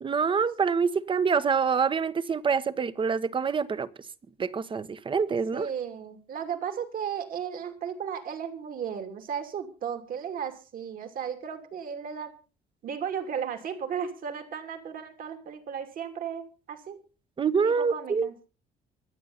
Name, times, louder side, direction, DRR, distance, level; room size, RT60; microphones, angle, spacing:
voice 1, 0.0-3.9 4.4-5.7 17.4-18.3, right 5 dB, 30° right, 1.1 m, -26 dB
voice 2, 5.5-12.3 12.8-17.0 17.6-18.3, right 7 dB, 55° right, 3.0 m, -35 dB
24.5 x 8.4 x 4.0 m
cardioid pair, 110°, 17 cm